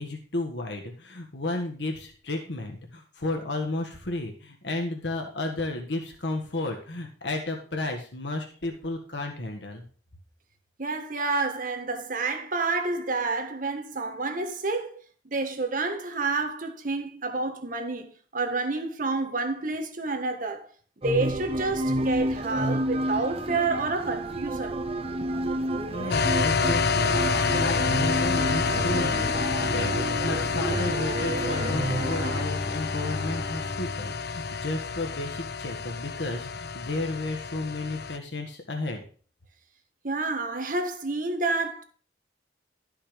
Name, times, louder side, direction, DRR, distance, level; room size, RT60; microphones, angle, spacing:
voice 1, 0.0-9.8 25.9-29.9 30.2-39.0, left 2 dB, 85° left, 1.6 m, -33 dB
voice 2, 10.8-20.7 21.0-24.8 40.0-41.8, right 3 dB, 50° right, 1.4 m, -29 dB
sound 1, 21.0-32.4, right 1 dB, 35° right, 0.7 m, -30 dB
sound 2, 26.1-38.2, left 5 dB, 60° left, 0.6 m, -28 dB
Bowed string instrument, 31.2-35.0, left 2 dB, 30° left, 1.5 m, -36 dB
12.5 x 5.7 x 5.2 m
head